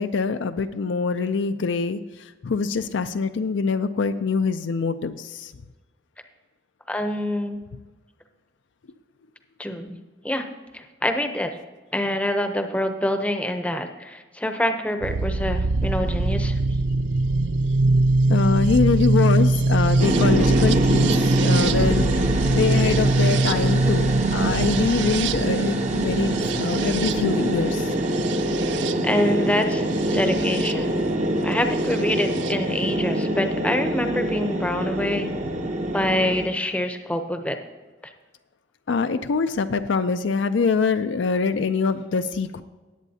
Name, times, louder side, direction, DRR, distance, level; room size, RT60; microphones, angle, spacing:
voice 1, 0.0-2.0 2.4-5.5 18.3-22.1 22.5-28.0 38.9-42.6, left 5 dB, 75° left, 9 dB, 0.4 m, -24 dB
voice 2, 6.9-7.6 9.6-10.5 10.7-11.5 11.9-16.6 29.0-29.8 30.1-30.9 31.4-35.3 35.9-37.6, left 1 dB, 5° left, 6 dB, 0.7 m, -26 dB
sound 1, 15.0-30.7 31.9-32.5, right 2 dB, 70° right, 0.4 m, -23 dB
sound 2, 20.0-36.5, right 1 dB, 35° right, 0.8 m, -25 dB
18.5 x 8.3 x 2.8 m, 1.2 s
head